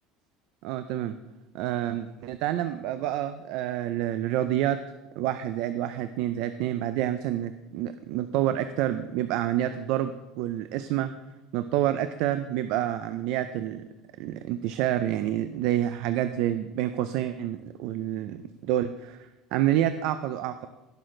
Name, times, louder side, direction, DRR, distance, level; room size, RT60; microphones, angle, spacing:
voice 1, 0.6-1.2 1.5-4.8 5.2-11.1 11.5-13.8 14.2-20.7, right 12 dB, 60° right, 11 dB, 0.4 m, -28 dB
17.5 x 6.3 x 3.8 m, 1.1 s
cardioid pair, 155°, 0 cm